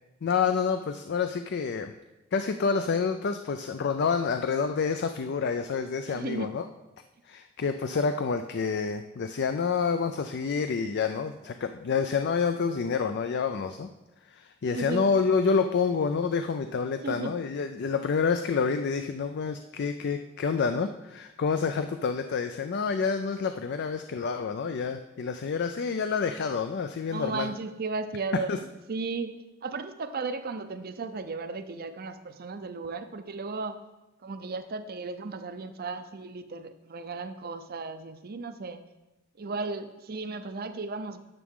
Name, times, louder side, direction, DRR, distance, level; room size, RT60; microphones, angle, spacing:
voice 1, 0.2-1.9 2.3-6.6 7.3-13.9 14.3-27.5 28.5-28.6, left 5 dB, 55° left, 8 dB, 0.4 m, -28 dB
voice 2, 6.1-6.6 14.7-15.1 17.0-17.4 27.1-33.8 34.2-38.8 39.4-41.2, right 3 dB, 45° right, 10 dB, 0.6 m, -35 dB
11.0 x 7.0 x 3.7 m, 1.0 s
head